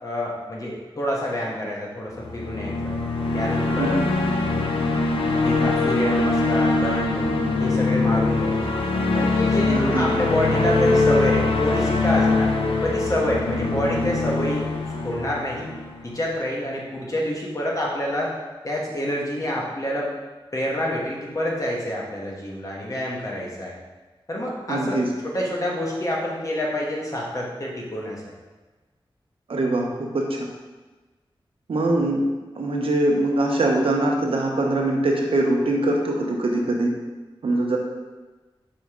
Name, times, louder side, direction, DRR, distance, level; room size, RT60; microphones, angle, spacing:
voice 1, 0.0-3.0 3.3-4.0 5.4-7.3 7.6-8.8 9.1-12.5 12.8-15.7 16.0-18.3 18.6-20.1 20.5-23.7 24.3-25.0 25.2-28.2, left 1 dB, 40° left, -3 dB, 1.3 m, -27 dB
sound 1, 2.1-16.3, left 3 dB, 85° left, 0.6 m, -23 dB
voice 2, 9.7-10.1 24.7-25.1 29.5-30.3 31.7-32.2 32.5-36.9 37.4-37.8, right 2 dB, 85° right, 0 dB, 0.9 m, -22 dB
5.1 x 5.0 x 3.7 m, 1.2 s
wide cardioid pair, 105°, 9 cm